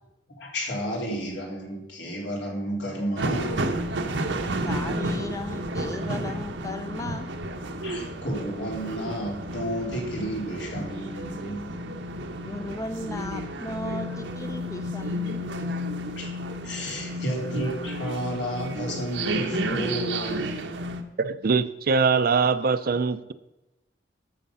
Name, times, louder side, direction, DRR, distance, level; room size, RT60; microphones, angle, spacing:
voice 1, 0.4-3.8 7.8-11.8 14.1-14.2 15.2-16.4 16.6-20.6, equal, 75° left, -1 dB, 3.3 m, -32 dB
sound 1, 3.2-21.0, right 1 dB, 85° right, 1.0 m, -31 dB
voice 2, 4.6-7.3 12.4-15.5, left 1 dB, 20° left, 8 dB, 0.5 m, -35 dB
voice 3, 21.2-23.3, right 5 dB, 55° right, 13 dB, 0.5 m, -23 dB
13.0 x 6.5 x 5.5 m, 0.99 s
head